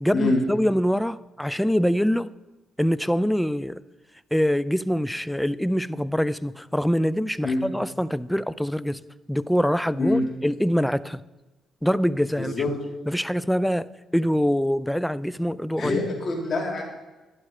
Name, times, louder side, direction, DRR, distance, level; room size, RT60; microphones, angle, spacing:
voice 1, 0.0-2.3 2.8-3.8 4.3-9.0 9.3-11.2 11.8-12.5 13.1-16.0, equal, 5° left, 18 dB, 0.4 m, -24 dB
voice 2, 12.4-12.7 15.8-16.8, left 2 dB, 45° left, -1 dB, 4.1 m, -25 dB
11.5 x 11.0 x 5.1 m, 1.1 s
cardioid pair, 90°, 0 cm